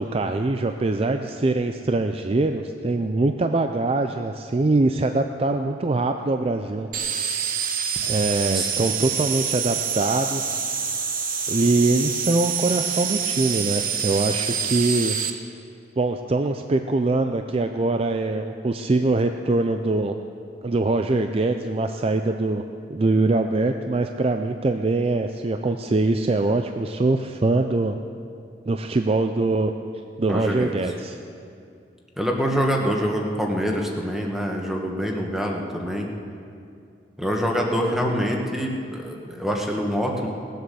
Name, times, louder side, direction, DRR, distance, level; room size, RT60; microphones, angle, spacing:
voice 1, 0.0-6.9 8.0-10.6 11.5-15.2 16.0-20.1 20.6-22.6 22.9-28.0 28.7-29.7 30.2-31.2, right 2 dB, 35° right, 6 dB, 0.5 m, -23 dB
sound 1, 6.9-15.3, right 7 dB, 55° right, 1.0 m, -26 dB
voice 2, 30.3-30.7 32.2-36.1 37.2-40.3, equal, ahead, 0 dB, 1.5 m, -25 dB
19.0 x 8.0 x 6.9 m, 2.4 s
head